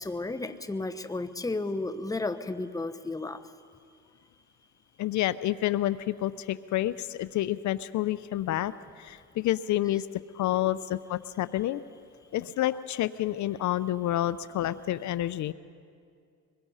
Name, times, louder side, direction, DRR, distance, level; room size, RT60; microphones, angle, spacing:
voice 1, 0.0-3.4 10.7-10.8, left 2 dB, 10° left, 9 dB, 1.0 m, -33 dB
voice 2, 5.0-10.1 10.3-11.8 12.3-15.5, left 14 dB, 70° left, 15 dB, 0.6 m, -29 dB
24.0 x 21.5 x 5.6 m, 2.3 s
cardioid pair, 90°, 30 cm